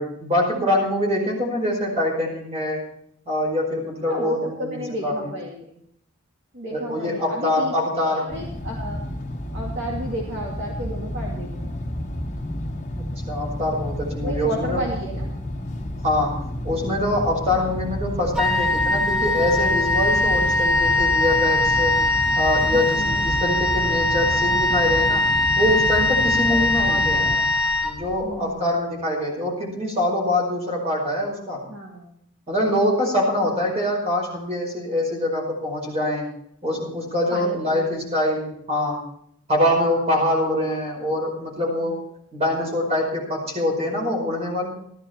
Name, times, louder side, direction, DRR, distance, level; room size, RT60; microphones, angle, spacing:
voice 1, 0.0-2.8 3.3-5.3 6.7-8.2 13.3-14.8 16.0-21.9 22.3-25.3 25.6-27.2 27.8-31.6 32.5-36.3 36.6-39.0 39.5-42.0 42.3-44.7, left 1 dB, 30° right, -1 dB, 5.2 m, -24 dB
voice 2, 4.0-5.7 6.5-9.1 9.5-11.8 14.2-15.3 17.5-17.8 22.7-23.3 26.5-27.5 28.2-28.8 29.2-29.3 31.7-32.1 37.3-38.0 41.8-42.0, equal, 50° right, -2 dB, 2.3 m, -33 dB
sound 1, 8.3-27.4, left 1 dB, 35° left, 1.5 m, -31 dB
Wind instrument woodwind instrument, 18.3-28.4, left 2 dB, ahead, 1.1 m, -21 dB
15.0 x 12.5 x 4.4 m, 0.71 s
head